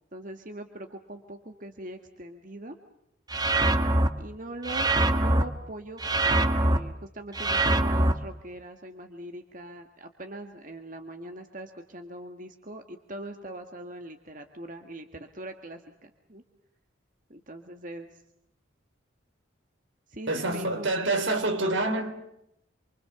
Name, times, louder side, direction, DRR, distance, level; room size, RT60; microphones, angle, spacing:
voice 1, 0.1-2.8 4.2-16.4 17.3-18.2 20.1-21.0, right 1 dB, 40° right, 1.6 m, -42 dB
sound 1, 3.3-4.1 4.6-5.4 6.0-6.8 7.3-8.1, right 2 dB, 20° right, 1.4 m, -23 dB
voice 2, 20.3-22.1, right 2 dB, 70° right, 3.9 m, -27 dB
28.5 x 24.5 x 6.9 m
head